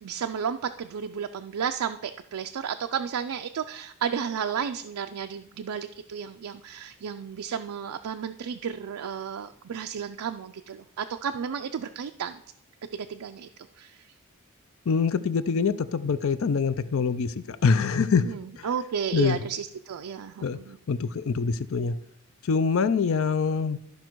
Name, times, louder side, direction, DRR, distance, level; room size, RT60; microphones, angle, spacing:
voice 1, 0.0-12.4 12.9-13.5 13.8-14.0 18.2-20.8, right 7 dB, 80° right, 7 dB, 0.4 m, -33 dB
voice 2, 14.9-18.3 18.6-18.7 19.1-19.4 20.4-20.6 20.9-21.9 22.4-23.8, left 5 dB, 65° left, 14 dB, 0.5 m, -24 dB
13.0 x 5.2 x 4.6 m, 0.76 s
head